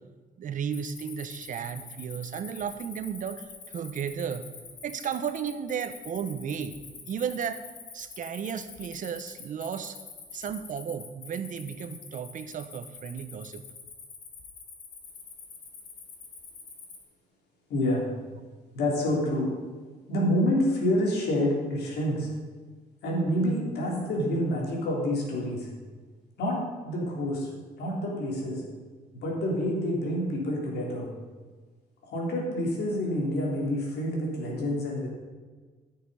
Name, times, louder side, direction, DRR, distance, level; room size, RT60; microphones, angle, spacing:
voice 1, 0.4-4.5 4.8-6.8 7.1-7.7 7.9-10.0 10.3-13.6, right 7 dB, 55° right, 10 dB, 0.8 m, -34 dB
Cricket, 0.7-17.0, left 5 dB, 65° left, 2.0 m, -46 dB
voice 2, 17.7-18.0 18.7-19.5 20.1-22.3 23.0-25.7 26.4-27.5 27.8-28.6 29.1-31.1 32.0-35.1, left 1 dB, 80° left, -2 dB, 3.3 m, -28 dB
13.0 x 6.8 x 5.5 m, 1.4 s
cardioid pair, 120°, 16 cm